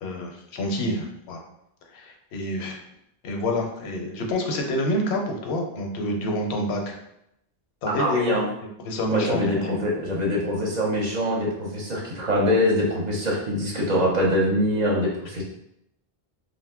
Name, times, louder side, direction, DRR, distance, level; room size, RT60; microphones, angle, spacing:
voice 1, 0.0-1.4 1.9-2.8 3.2-7.0 7.8-8.4 8.8-9.8, left 1 dB, 85° left, 2 dB, 0.8 m, -27 dB
voice 2, 8.0-8.5 9.1-15.4, equal, 50° right, -3 dB, 0.7 m, -24 dB
2.6 x 2.1 x 3.4 m, 0.79 s
omnidirectional pair, 1.1 m